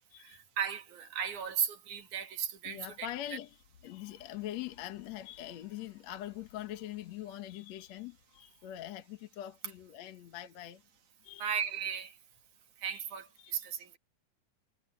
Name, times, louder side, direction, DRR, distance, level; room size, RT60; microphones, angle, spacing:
voice 1, 0.2-3.1 11.4-12.1 12.8-14.0, right 8 dB, 70° right, 3.4 m, -36 dB
voice 2, 2.6-3.6 3.8-10.8 11.2-11.5 12.9-13.0 13.4-13.5, left 13 dB, 60° left, 2.3 m, -43 dB
omnidirectional pair, 3.7 m